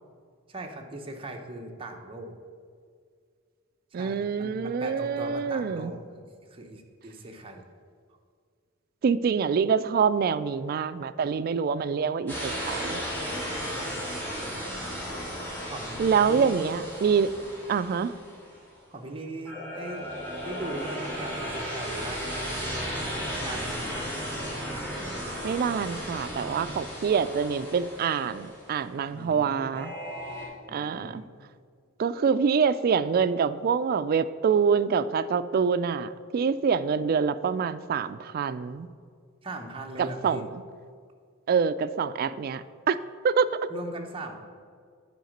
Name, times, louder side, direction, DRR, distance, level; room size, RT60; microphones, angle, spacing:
voice 1, 0.5-2.4 3.9-7.6 13.2-14.1 15.7-16.8 18.9-20.1 20.4-22.9 23.4-24.1 29.1-29.8 30.7-31.3 39.4-40.5 42.1-42.2 43.7-44.4, right 2 dB, 25° right, 2 dB, 0.9 m, -40 dB
voice 2, 3.9-5.9 9.0-13.0 16.0-17.3 17.7-18.1 25.4-29.9 30.7-31.2 32.0-38.9 40.0-40.5 41.5-43.0 43.2-43.5, right 6 dB, 45° right, 13 dB, 0.3 m, -26 dB
sound 1, 12.3-18.7 19.5-28.8 29.7-30.5, equal, 10° left, 2.6 m, -35 dB
9.3 x 4.8 x 6.5 m, 2.1 s
head